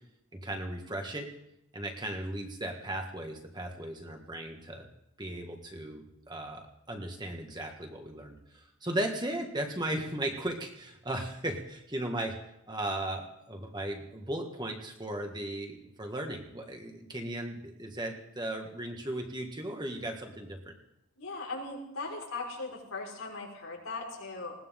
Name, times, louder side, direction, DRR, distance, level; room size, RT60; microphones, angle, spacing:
voice 1, 0.3-1.3 1.7-4.9 5.2-12.3 12.7-20.7, right 1 dB, 20° right, 3 dB, 1.9 m, -36 dB
voice 2, 21.2-24.5, left 3 dB, 90° left, -2 dB, 5.3 m, -39 dB
20.0 x 17.5 x 3.8 m, 0.84 s
head